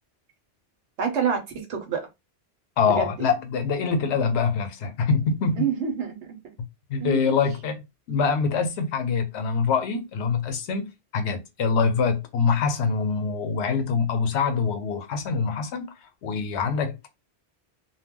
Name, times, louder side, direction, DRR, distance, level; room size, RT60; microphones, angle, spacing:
voice 1, 1.0-2.1 2.8-3.3 5.6-6.4 7.0-7.4, right 7 dB, 85° right, 1.0 m, -28 dB
voice 2, 2.8-5.7 6.9-15.9 16.2-17.1, left 5 dB, 80° left, 0.9 m, -24 dB
2.2 x 2.1 x 3.6 m
omnidirectional pair, 1.1 m